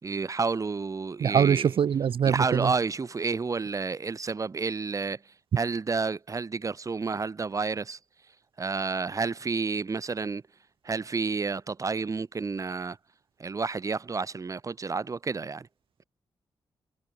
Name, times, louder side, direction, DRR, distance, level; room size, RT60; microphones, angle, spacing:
voice 1, 0.0-1.7 2.2-5.2 5.6-8.0 8.6-10.4 10.8-13.0 13.4-15.7, right 4 dB, 35° right, 3.5 m, -30 dB
voice 2, 1.2-2.7, right 8 dB, 80° right, 3.5 m, -23 dB
wide cardioid pair, 135°, 9 cm